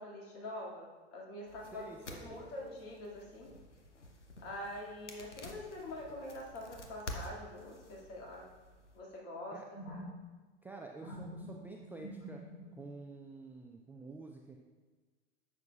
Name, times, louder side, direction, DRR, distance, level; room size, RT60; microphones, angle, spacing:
voice 1, 0.0-3.5 4.4-8.5 8.9-10.1 11.0-11.6 12.0-12.8, left 1 dB, 40° left, -2 dB, 2.2 m, -45 dB
sound 1, 1.5-9.0, left 1 dB, 90° left, 0.9 m, -50 dB
voice 2, 1.7-2.4 9.5-9.6 10.6-12.4 12.8-14.6, right 3 dB, 5° right, 1 dB, 0.3 m, -49 dB
10.5 x 7.3 x 2.4 m, 1.4 s
figure-of-eight pair, 85°, 34 cm